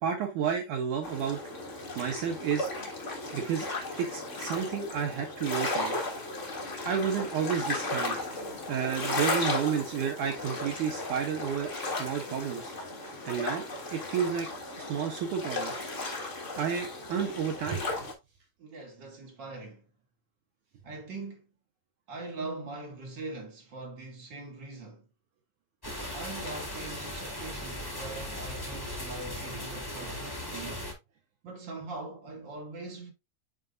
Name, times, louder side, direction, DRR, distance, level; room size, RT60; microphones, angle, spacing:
voice 1, 0.0-1.4 2.0-2.7 3.3-3.7 3.9-6.0 6.8-8.2 8.7-12.7 13.3-14.5 14.8-15.7 16.6-17.9, right 7 dB, 70° right, 2.0 m, -31 dB
sound 1, 1.0-18.1, left 2 dB, 85° left, 0.6 m, -35 dB
voice 2, 18.6-19.9 20.8-21.5 22.1-25.0 26.1-30.8 31.4-33.1, right 3 dB, 45° right, 1.6 m, -42 dB
sound 2, 25.8-30.9, left 1 dB, 15° left, 0.7 m, -38 dB
9.4 x 4.5 x 2.5 m
omnidirectional pair, 4.5 m